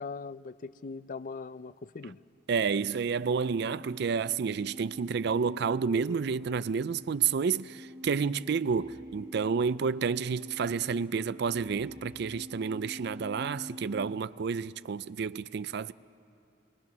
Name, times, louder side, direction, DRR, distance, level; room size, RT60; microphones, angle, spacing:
voice 1, 0.0-2.2, left 4 dB, 45° left, 0.5 m, -40 dB
voice 2, 2.5-15.9, right 6 dB, 60° right, 0.4 m, -30 dB
sound 1, 3.1-14.3, left 1 dB, 20° right, 0.9 m, -47 dB
26.5 x 21.0 x 6.0 m
head